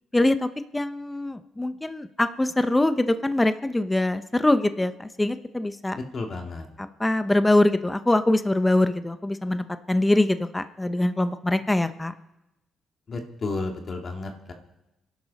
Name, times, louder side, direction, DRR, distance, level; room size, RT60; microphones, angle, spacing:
voice 1, 0.1-6.0 7.0-12.1, left 1 dB, 15° left, 10 dB, 0.9 m, -23 dB
voice 2, 5.9-6.7 13.1-14.5, left 3 dB, 45° left, 2 dB, 2.4 m, -32 dB
28.0 x 11.5 x 4.2 m, 0.94 s
cardioid pair, 90°, 0 cm